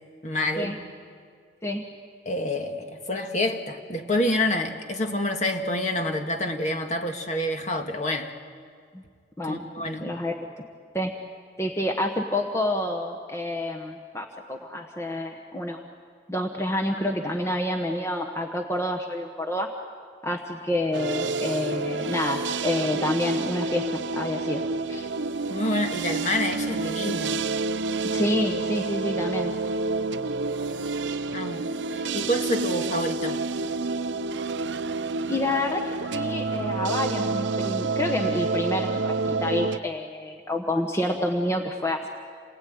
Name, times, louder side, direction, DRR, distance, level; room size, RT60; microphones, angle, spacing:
voice 1, 0.2-0.8 2.3-8.3 9.5-10.1 25.5-27.4 31.3-33.4, left 1 dB, 40° left, 4 dB, 1.8 m, -28 dB
voice 2, 10.0-10.4 10.9-11.1 11.6-15.8 16.3-19.7 20.2-24.6 24.9-25.1 28.1-29.5 35.3-42.1, left 1 dB, 15° left, 3 dB, 1.2 m, -28 dB
sound 1, 20.9-39.8, right 3 dB, 70° right, 0.7 m, -29 dB
28.0 x 19.5 x 9.4 m, 2.1 s
head